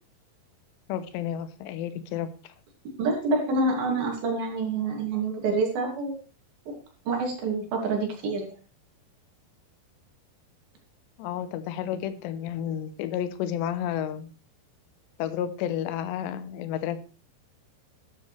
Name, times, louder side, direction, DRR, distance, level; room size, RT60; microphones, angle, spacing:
voice 1, 0.9-2.5 11.2-14.3 15.2-17.0, left 10 dB, 90° left, 11 dB, 3.0 m, -31 dB
voice 2, 3.0-6.2 6.7-6.8 7.1-8.5, right 3 dB, 60° right, 1 dB, 4.1 m, -27 dB
12.5 x 10.5 x 3.2 m, 0.34 s
omnidirectional pair, 4.9 m